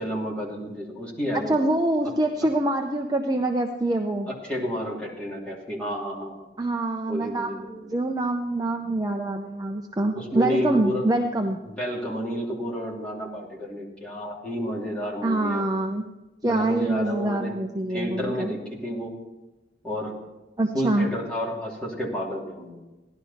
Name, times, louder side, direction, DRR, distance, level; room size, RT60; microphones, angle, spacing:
voice 1, 0.0-1.5 2.0-2.1 4.3-6.5 7.1-7.9 10.2-11.1 11.6-15.7 16.4-17.5 17.9-19.2 19.8-20.1 20.7-22.8, equal, 5° left, -5 dB, 2.9 m, -30 dB
voice 2, 1.3-4.3 6.6-11.6 15.2-16.0 16.4-18.5 20.6-21.1, right 2 dB, 20° right, 3 dB, 0.6 m, -25 dB
16.5 x 11.5 x 4.3 m, 1.1 s
head